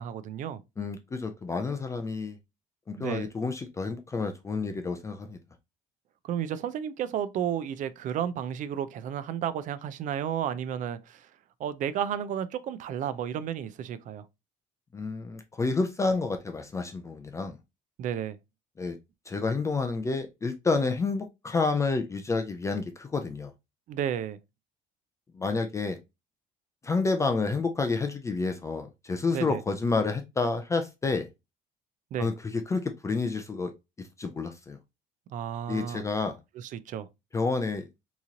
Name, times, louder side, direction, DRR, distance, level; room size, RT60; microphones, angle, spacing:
voice 1, 0.0-0.6 3.0-3.3 6.2-11.3 11.6-14.3 18.0-18.4 23.9-24.4 29.3-29.6 32.1-32.3 35.3-36.0 36.6-37.1, right 9 dB, 50° right, 0.4 m, -32 dB
voice 2, 0.8-2.4 2.9-5.4 14.9-17.6 18.8-19.0 19.3-23.5 25.3-26.0 26.8-31.3 32.2-33.7 34.0-34.8 35.7-36.4 37.3-37.9, left 4 dB, 15° left, 0.4 m, -29 dB
3.7 x 3.0 x 2.7 m
cardioid pair, 145°, 17 cm